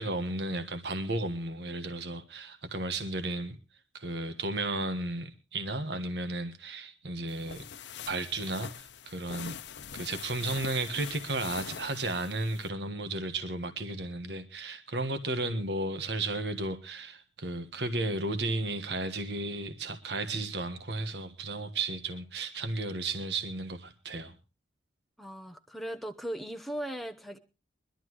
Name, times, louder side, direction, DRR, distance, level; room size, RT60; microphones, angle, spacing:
voice 1, 0.0-3.6 3.9-7.6 8.1-9.6 9.9-24.3, right 2 dB, 65° right, 1.4 m, -34 dB
sound 1, 7.3-12.7, left 7 dB, 75° left, 0.8 m, -43 dB
voice 2, 25.2-27.4, right 1 dB, ahead, 0.8 m, -38 dB
23.0 x 12.0 x 3.1 m
head